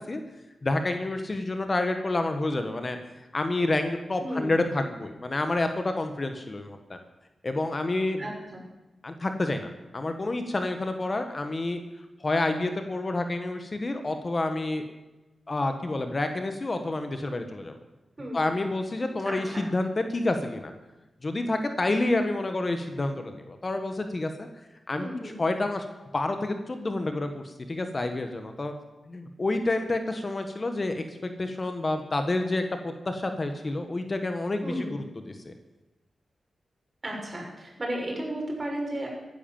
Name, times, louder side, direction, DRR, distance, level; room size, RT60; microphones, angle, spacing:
voice 1, 0.6-7.0 7.4-8.2 9.0-11.8 12.2-14.9 15.5-17.8 18.3-20.7 21.2-24.5 24.9-25.8 26.1-28.7 29.1-35.5, left 2 dB, 40° left, 7 dB, 1.5 m, -29 dB
voice 2, 4.2-4.5 8.2-8.6 18.2-18.4 19.3-19.7 25.0-25.4 34.6-34.9 37.0-39.1, right 1 dB, 35° right, -1 dB, 6.0 m, -33 dB
14.5 x 11.0 x 7.3 m, 1.1 s
cardioid pair, 70°, 0 cm